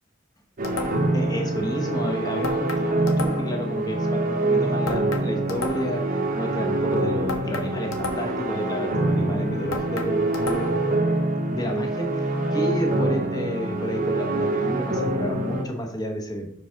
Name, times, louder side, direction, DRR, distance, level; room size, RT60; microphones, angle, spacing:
sound 1, 0.6-1.2 2.4-3.7 4.9-6.1 7.3-8.5 9.7-10.9, left 3 dB, 75° left, 1.0 m, -33 dB
sound 2, 0.6-15.6, right 2 dB, 40° right, 1.0 m, -25 dB
voice 1, 1.1-10.8 11.5-16.5, equal, 20° left, 2 dB, 1.2 m, -31 dB
5.2 x 4.9 x 5.8 m, 0.69 s
head